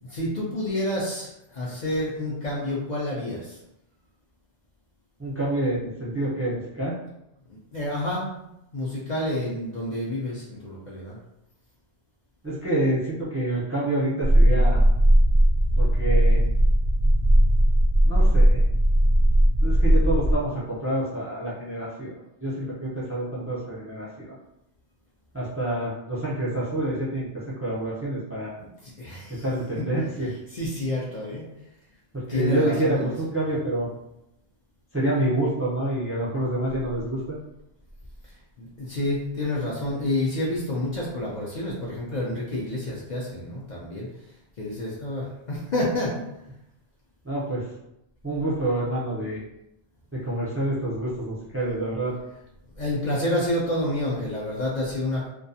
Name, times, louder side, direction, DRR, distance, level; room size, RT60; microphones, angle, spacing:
voice 1, 0.0-3.6 7.5-11.2 28.6-29.4 29.8-29.9 30.5-31.5 32.3-33.1 38.6-44.1 44.6-46.2 52.8-55.3, left 1 dB, 55° left, -5 dB, 0.6 m, -29 dB
voice 2, 5.2-7.0 12.4-14.8 15.8-16.4 18.0-18.6 19.6-24.3 25.3-27.3 27.6-28.5 29.4-30.3 32.3-33.9 34.9-37.4 47.2-47.6 48.2-49.4 50.1-52.1, right 1 dB, 20° right, -7 dB, 0.4 m, -27 dB
sound 1, 14.2-20.4, right 1 dB, 75° left, 0.9 m, -18 dB
2.3 x 2.3 x 2.6 m, 0.86 s
omnidirectional pair, 1.1 m